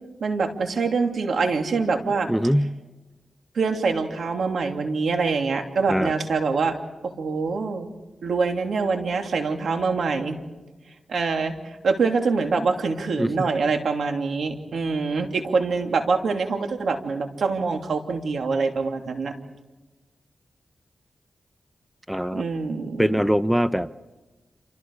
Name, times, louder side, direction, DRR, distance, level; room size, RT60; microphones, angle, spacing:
voice 1, 0.2-2.3 3.5-6.8 7.0-7.9 8.2-10.4 11.1-19.3 22.3-23.2, right 4 dB, 80° right, 4 dB, 2.9 m, -25 dB
voice 2, 2.3-2.7 5.9-6.1 13.2-13.5 22.1-22.4 23.0-23.9, equal, 5° right, 12 dB, 0.8 m, -22 dB
28.5 x 28.0 x 4.8 m, 1.1 s
cardioid pair, 65°, 0 cm